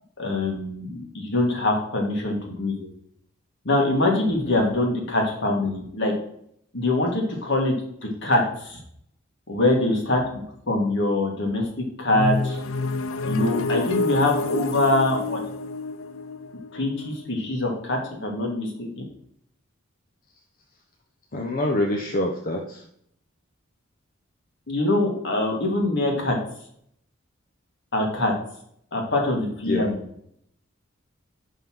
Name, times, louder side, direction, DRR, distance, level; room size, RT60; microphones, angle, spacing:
voice 1, 0.2-2.9 3.6-6.1 6.7-7.7 8.0-8.8 9.5-11.7 12.0-12.6 13.2-15.4 16.7-19.1 24.7-26.4 27.9-28.3 28.9-30.0, left 2 dB, 60° left, 1 dB, 2.0 m, -24 dB
sound 1, 12.1-17.9, left 3 dB, 85° left, 0.5 m, -29 dB
voice 2, 21.3-22.8 29.7-29.8, left 1 dB, 45° left, 2 dB, 0.8 m, -25 dB
5.6 x 5.5 x 5.9 m, 0.69 s
head